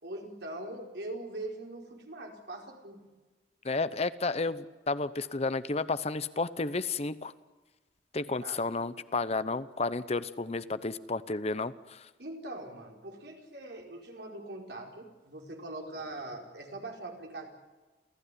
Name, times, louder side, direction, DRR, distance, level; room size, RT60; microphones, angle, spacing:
voice 1, 0.0-3.0 8.4-8.9 12.2-17.5, right 2 dB, 65° right, 1 dB, 4.6 m, -42 dB
voice 2, 3.6-7.3 8.1-12.1, left 3 dB, 35° left, 14 dB, 0.8 m, -32 dB
29.0 x 15.5 x 10.0 m, 1.3 s
head